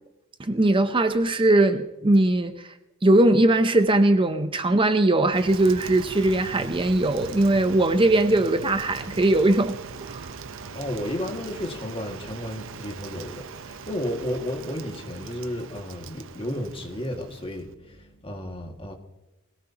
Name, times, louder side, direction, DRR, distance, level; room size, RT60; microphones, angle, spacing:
voice 1, 0.4-2.7 3.0-9.8 10.0-10.3, right 2 dB, 25° right, 0.7 m, -20 dB
Rain, 5.3-17.7, right 5 dB, 65° right, 0.9 m, -40 dB
voice 2, 10.7-18.9, equal, 25° left, 2.0 m, -33 dB
21.5 x 17.5 x 2.9 m
head